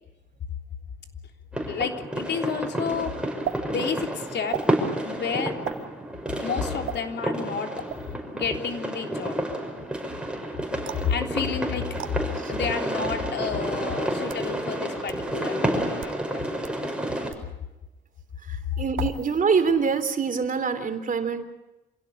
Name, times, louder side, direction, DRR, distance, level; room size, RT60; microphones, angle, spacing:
sound 1, 1.5-17.3, right 1 dB, 5° right, 6.1 m, -30 dB
voice 1, 1.7-3.3 3.6-4.6 5.0-5.6 6.4-7.8 8.3-9.4 11.0-16.4, left 6 dB, 60° left, 4 dB, 3.5 m, -30 dB
sound 2, 3.4-3.6 4.5-4.7 5.6-5.8 6.8-7.0 7.9-8.1 10.8-11.1 12.0-12.1 13.1-13.2 14.0-14.5 15.1-15.2 15.9-16.2 16.6-16.7 17.3-17.5 18.9-19.4 19.7-20.1, right 10 dB, 85° right, 2.0 m, -35 dB
voice 2, 18.5-21.4, right 5 dB, 40° right, 9 dB, 3.3 m, -25 dB
26.5 x 17.0 x 8.6 m, 1.0 s
cardioid pair, 90°, 20 cm